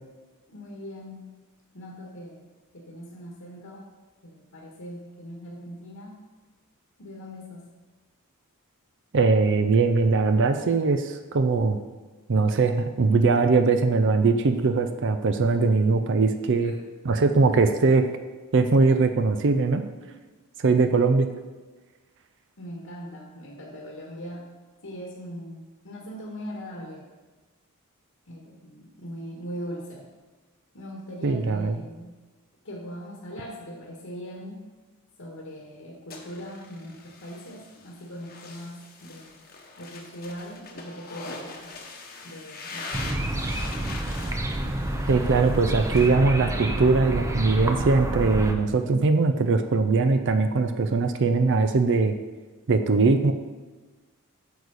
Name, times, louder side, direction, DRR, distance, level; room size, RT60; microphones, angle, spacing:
voice 1, 0.5-1.3 1.7-3.9 4.2-6.1 7.0-7.7 16.6-16.7 20.0-20.1 20.8-21.1 22.6-24.5 24.8-27.0 28.3-30.1 30.7-32.1 32.6-34.6 35.2-39.4 39.8-41.8 42.2-43.4, equal, 75° left, -3 dB, 1.6 m, -40 dB
voice 2, 9.1-11.8 12.3-16.7 17.0-18.0 18.5-19.8 20.6-21.3 31.2-31.8 45.1-52.1 52.7-53.3, right 4 dB, 55° right, 8 dB, 0.5 m, -21 dB
sound 1, 36.1-46.1, left 3 dB, 45° left, 1.1 m, -42 dB
sound 2, 42.9-48.5, right 1 dB, 15° right, 0.6 m, -28 dB
9.4 x 6.6 x 4.1 m, 1.3 s
head